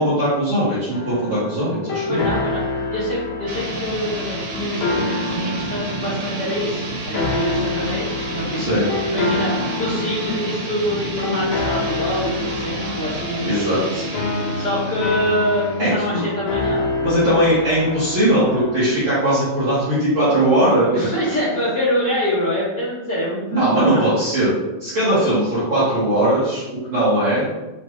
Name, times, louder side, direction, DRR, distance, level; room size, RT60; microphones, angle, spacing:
voice 1, 0.0-2.3 8.6-8.8 13.4-14.1 15.8-16.2 17.0-21.1 23.5-24.5 24.8-26.6 26.9-27.5, right 1 dB, 70° right, -11 dB, 1.2 m, -19 dB
sound 1, 0.9-18.9, left 3 dB, 85° left, 1.6 m, -27 dB
voice 2, 2.1-2.6 2.9-13.7 14.5-16.9 20.9-24.1, equal, 65° left, -13 dB, 1.0 m, -25 dB
sound 2, 3.5-16.0, right 2 dB, 90° right, 2.7 m, -30 dB
5.6 x 2.3 x 3.1 m, 1.1 s
omnidirectional pair, 4.3 m